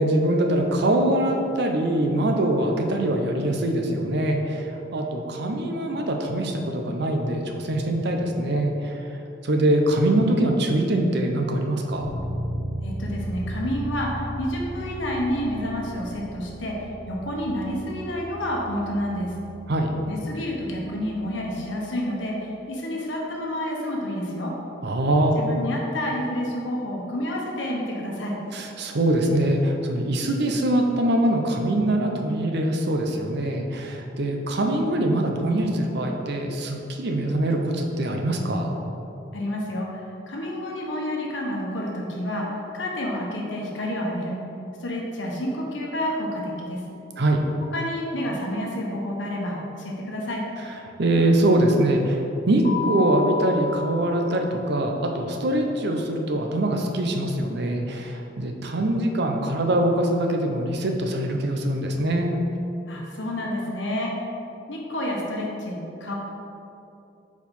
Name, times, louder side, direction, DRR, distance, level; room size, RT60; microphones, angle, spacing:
voice 1, 0.0-9.0 9.4-12.1 19.7-20.0 24.8-25.4 28.5-38.7 47.2-47.4 51.0-62.3, right 1 dB, 60° right, 3 dB, 0.7 m, -23 dB
Bass guitar, 12.0-21.8, right 1 dB, 25° left, 0.9 m, -36 dB
voice 2, 12.8-19.3 20.1-24.5 25.4-28.4 39.3-44.4 44.8-46.8 47.7-50.4 62.9-64.1 64.7-66.1, left 1 dB, 70° left, -2 dB, 1.1 m, -29 dB
Keyboard (musical), 52.6-55.2, left 4 dB, 45° left, 1.3 m, -32 dB
4.7 x 4.5 x 5.3 m, 2.8 s
head